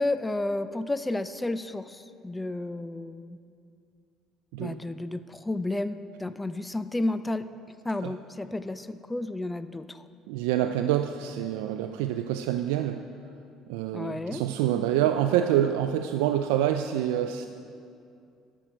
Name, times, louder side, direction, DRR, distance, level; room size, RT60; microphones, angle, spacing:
voice 1, 0.0-3.4 4.6-7.5 7.8-10.0 13.9-14.4, left 2 dB, 10° left, 13 dB, 0.4 m, -31 dB
voice 2, 10.3-13.1 13.7-17.5, right 11 dB, 90° right, 7 dB, 0.3 m, -26 dB
13.0 x 6.3 x 4.5 m, 2.5 s
supercardioid pair, 90°, 0 cm